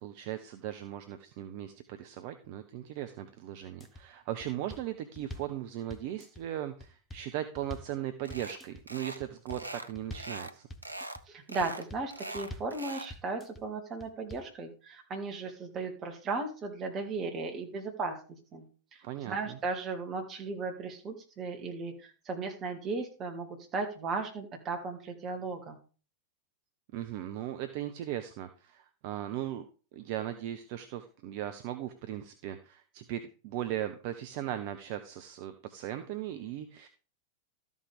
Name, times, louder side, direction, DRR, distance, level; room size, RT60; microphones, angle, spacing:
voice 1, 0.0-10.7 19.0-19.6 26.9-29.6 29.9-36.9, right 12 dB, 45° right, 9 dB, 0.8 m, -38 dB
sound 1, 3.6-4.0 4.4-5.6 5.9-6.4 6.8-8.0 8.3-8.8 9.2-9.7 9.9-10.4 10.7-11.2 11.6-12.1 12.3-12.8 13.1-13.6 14.0-14.5, left 1 dB, 15° left, 1.1 m, -46 dB
sound 2, 8.3-8.6 8.9-9.2 9.5-10.5 10.8-11.2 11.5-13.1, right 2 dB, 85° right, 0.6 m, -42 dB
voice 2, 11.3-18.2 18.5-18.7 19.3-25.8, right 3 dB, 30° right, 3 dB, 2.3 m, -36 dB
13.0 x 5.4 x 4.9 m, 0.36 s
figure-of-eight pair, 90°, 0 cm